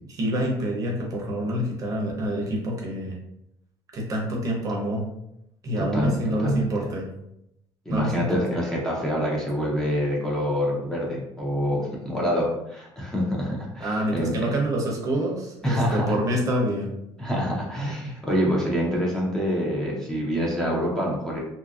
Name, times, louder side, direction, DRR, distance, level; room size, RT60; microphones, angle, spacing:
voice 1, 0.1-3.2 3.9-5.0 5.6-7.1 7.9-8.4 13.8-16.9, right 1 dB, 40° right, -1 dB, 0.6 m, -27 dB
voice 2, 5.8-6.7 7.9-14.3 15.6-16.2 17.2-21.4, equal, 5° left, -4 dB, 0.6 m, -26 dB
2.8 x 2.5 x 2.3 m, 0.82 s
cardioid pair, 145°, 9 cm